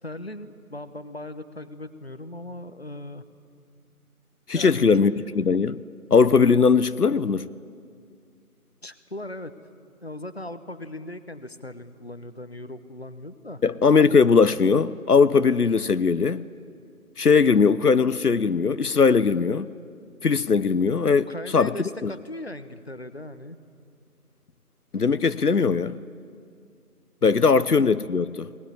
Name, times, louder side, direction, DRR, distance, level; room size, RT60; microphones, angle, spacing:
voice 1, 0.0-3.2 4.5-4.9 8.8-9.5 10.0-13.6 21.3-23.6, left 1 dB, 45° left, 1.0 m, -38 dB
voice 2, 4.5-5.8 6.1-7.5 13.6-16.4 17.2-19.7 20.2-21.3 21.5-21.7 22.0-22.1 24.9-26.0 27.2-28.5, left 5 dB, 85° left, 0.8 m, -19 dB
20.5 x 20.0 x 9.8 m
figure-of-eight pair, 175°, 45 cm